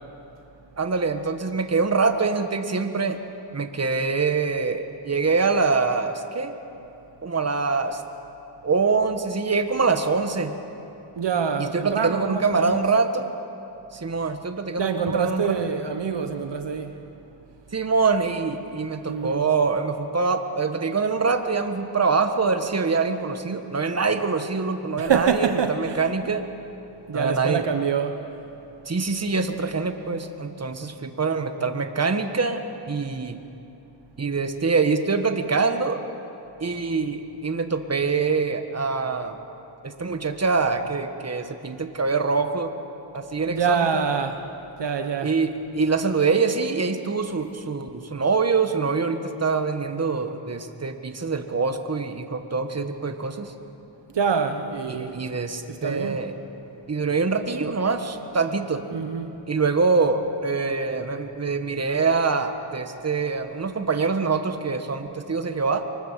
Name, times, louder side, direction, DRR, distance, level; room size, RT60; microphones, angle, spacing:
voice 1, 0.8-3.2 3.5-6.5 7.2-8.0 8.6-10.5 11.6-13.3 13.9-15.5 17.7-26.4 27.1-27.6 28.9-32.6 32.9-33.4 34.2-36.0 36.6-39.4 39.8-42.7 43.1-43.8 45.2-53.5 54.9-56.3 56.9-58.8 59.5-65.9, right 4 dB, 30° right, 7 dB, 1.6 m, -24 dB
voice 2, 11.2-12.8 14.8-16.9 19.1-19.4 25.0-26.1 27.1-28.2 43.4-44.4 44.8-45.3 54.1-55.3 55.7-56.2 58.9-59.3, right 6 dB, 60° right, 6 dB, 1.2 m, -25 dB
24.5 x 19.5 x 7.6 m, 2.9 s
cardioid pair, 75°, 47 cm